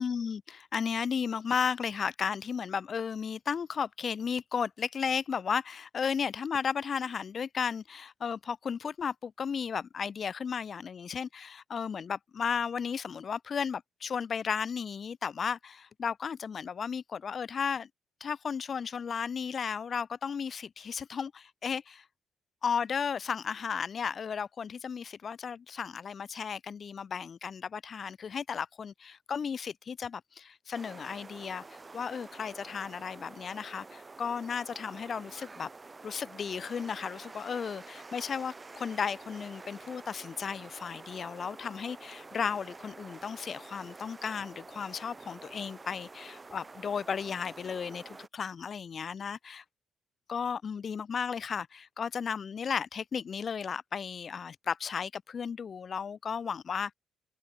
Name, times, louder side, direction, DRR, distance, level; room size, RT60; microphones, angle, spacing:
voice 1, 0.0-17.9 18.2-22.0 22.6-35.7 36.0-49.6 50.3-56.9, left 6 dB, 45° left, 0.9 m, -34 dB
sound 1, 30.7-48.3, right 3 dB, 25° right, 6.9 m, -49 dB
cardioid pair, 90°, 0 cm